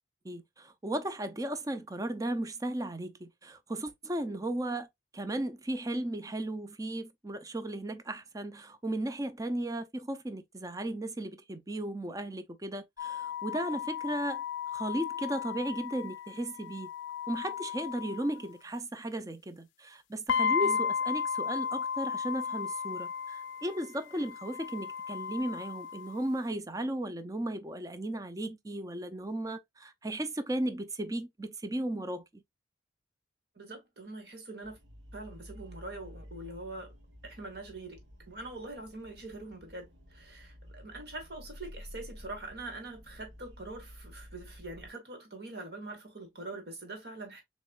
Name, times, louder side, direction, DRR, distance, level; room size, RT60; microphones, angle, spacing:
voice 1, 0.2-4.9 5.1-14.4 14.7-16.9 17.3-32.2, right 1 dB, 20° right, 0.5 m, -35 dB
sound 1, 13.0-18.4 20.3-26.3, left 7 dB, 85° left, 0.4 m, -34 dB
voice 2, 33.6-34.8 35.1-36.9 37.2-38.0 38.3-47.4, right 2 dB, 60° right, 2.1 m, -43 dB
sound 2, 34.6-44.9, equal, 90° right, 1.2 m, -51 dB
6.8 x 3.1 x 2.4 m
head